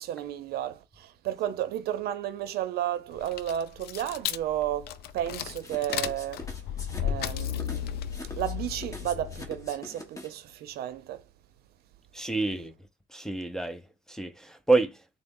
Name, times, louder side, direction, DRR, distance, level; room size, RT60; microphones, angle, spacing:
voice 1, 0.0-6.5 7.0-11.2, right 11 dB, 70° right, 0.6 m, -33 dB
sound 1, 3.1-9.7, left 10 dB, 70° left, 0.4 m, -34 dB
sound 2, 5.6-10.5, left 1 dB, 20° left, 1.1 m, -44 dB
voice 2, 12.1-12.7 13.1-13.8 14.1-15.0, right 3 dB, 5° left, 0.4 m, -27 dB
3.8 x 2.0 x 3.6 m
cardioid pair, 110°, 17 cm